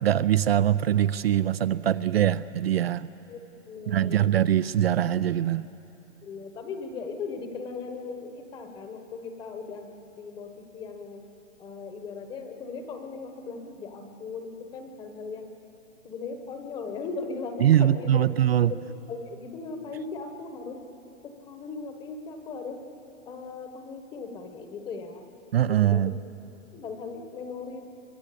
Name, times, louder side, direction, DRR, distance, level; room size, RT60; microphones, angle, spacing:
voice 1, 0.0-3.1 3.9-5.6 17.6-18.7 25.5-26.1, right 11 dB, 50° right, 14 dB, 0.6 m, -22 dB
voice 2, 3.7-4.2 6.2-9.9 10.2-11.2 11.6-15.5 16.0-18.3 18.7-20.8 21.2-22.8 23.3-25.2 25.7-26.1 26.7-27.8, left 4 dB, 10° left, 6 dB, 1.1 m, -38 dB
23.5 x 23.0 x 8.4 m, 2.8 s
hypercardioid pair, 165°, 38 cm